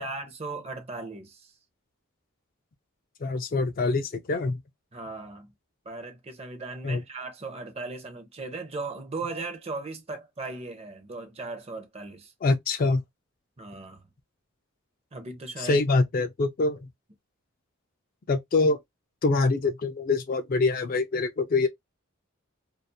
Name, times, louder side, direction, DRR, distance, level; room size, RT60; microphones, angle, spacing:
voice 1, 0.0-1.5 4.9-5.5 5.9-12.3 13.6-14.0 15.1-15.8, right 3 dB, 30° right, 0.6 m, -37 dB
voice 2, 3.2-4.6 6.8-7.0 12.4-13.0 15.6-16.9 18.3-18.8 19.2-21.7, left 3 dB, 40° left, 0.4 m, -25 dB
2.3 x 2.3 x 2.6 m
head